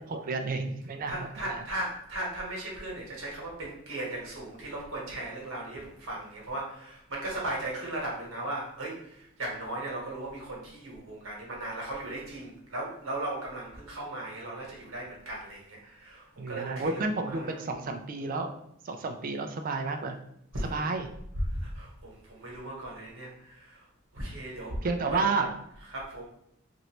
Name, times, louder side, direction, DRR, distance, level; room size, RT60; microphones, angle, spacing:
voice 1, 0.0-1.6 16.4-18.5 18.8-20.2 20.7-21.1 24.8-25.5, right 3 dB, 45° right, 6 dB, 0.4 m, -31 dB
voice 2, 1.1-17.6 20.5-20.9 21.3-23.9 24.1-25.3 25.7-26.2, right 1 dB, 85° right, -2 dB, 1.2 m, -37 dB
3.1 x 2.6 x 2.9 m, 0.75 s
head